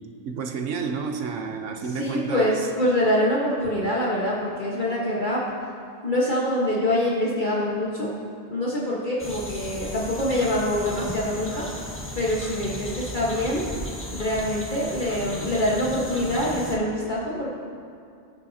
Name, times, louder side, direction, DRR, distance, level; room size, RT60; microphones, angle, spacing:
voice 1, 0.3-2.6, right 5 dB, 70° right, 5 dB, 1.2 m, -30 dB
voice 2, 1.9-5.4 6.0-8.1 8.5-11.6 12.1-13.7 14.1-17.5, left 1 dB, 40° left, -6 dB, 1.5 m, -25 dB
sound 1, 9.2-16.8, left 1 dB, 10° left, 1.2 m, -35 dB
21.5 x 7.4 x 2.8 m, 2.4 s
omnidirectional pair, 1.4 m